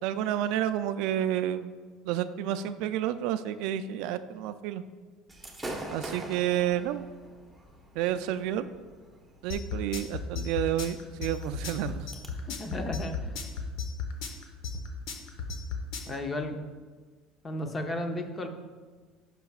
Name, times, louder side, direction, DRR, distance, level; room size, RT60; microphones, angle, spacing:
voice 1, 0.0-1.7 2.0-4.8 5.9-7.0 8.0-8.7 9.4-12.1, right 11 dB, 70° right, 12 dB, 0.3 m, -30 dB
Gunshot gunfire / Fireworks, 5.3-12.3, right 1 dB, 5° right, 1.2 m, -45 dB
sound 1, 9.5-16.1, left 6 dB, 70° left, 1.0 m, -34 dB
voice 2, 12.5-13.4 16.1-16.6 17.4-18.5, left 1 dB, 25° left, 6 dB, 0.7 m, -34 dB
11.0 x 5.8 x 2.4 m, 1.5 s
supercardioid pair, 115°, 0 cm